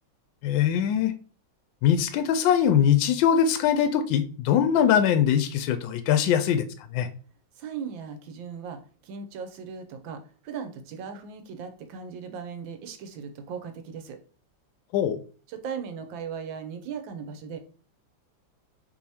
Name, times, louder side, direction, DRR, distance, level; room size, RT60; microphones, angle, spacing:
voice 1, 0.4-1.1 1.8-6.6 6.9-7.1 14.9-15.2, left 9 dB, 80° left, 1.2 m, -22 dB
voice 2, 7.6-14.2 15.5-17.6, right 6 dB, 85° right, 1.4 m, -38 dB
4.8 x 3.3 x 2.8 m
omnidirectional pair, 2.1 m